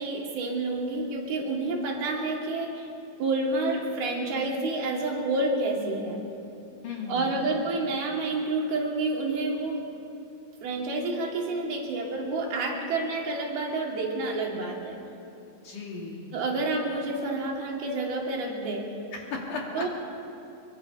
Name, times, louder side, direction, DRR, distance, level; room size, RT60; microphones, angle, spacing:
voice 1, 0.0-2.9 3.2-6.2 7.1-9.8 10.6-15.0 16.3-18.9 19.7-19.9, right 2 dB, 85° right, -1 dB, 4.6 m, -29 dB
voice 2, 6.8-7.4 15.6-16.4 19.1-19.9, left 4 dB, 60° left, -1 dB, 4.2 m, -36 dB
25.0 x 22.5 x 5.6 m, 2.7 s
omnidirectional pair, 4.3 m